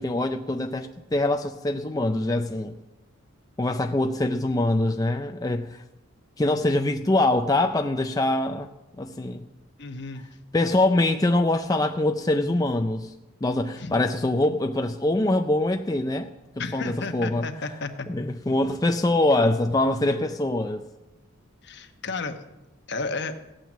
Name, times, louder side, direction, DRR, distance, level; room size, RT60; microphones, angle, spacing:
voice 1, 0.0-2.7 3.6-5.8 6.4-8.7 9.0-9.4 10.5-13.1 13.4-16.3 16.7-17.5 18.1-20.9, left 2 dB, 15° left, 0.4 m, -24 dB
voice 2, 9.8-10.3 13.8-14.0 16.6-18.1 21.6-22.4 22.9-23.3, left 3 dB, 55° left, 1.1 m, -32 dB
16.5 x 9.1 x 7.4 m
head